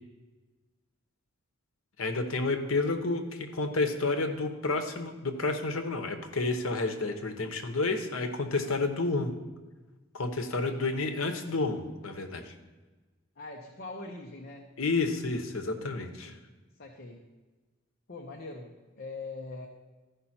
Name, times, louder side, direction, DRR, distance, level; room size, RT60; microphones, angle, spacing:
voice 1, 2.0-9.3 10.1-12.5 14.8-16.3, left 3 dB, 85° left, 6 dB, 1.0 m, -30 dB
voice 2, 13.4-14.7 16.2-16.4 16.8-17.3 18.1-19.7, left 3 dB, 50° left, 0 dB, 0.8 m, -42 dB
13.5 x 5.5 x 4.3 m, 1.3 s
head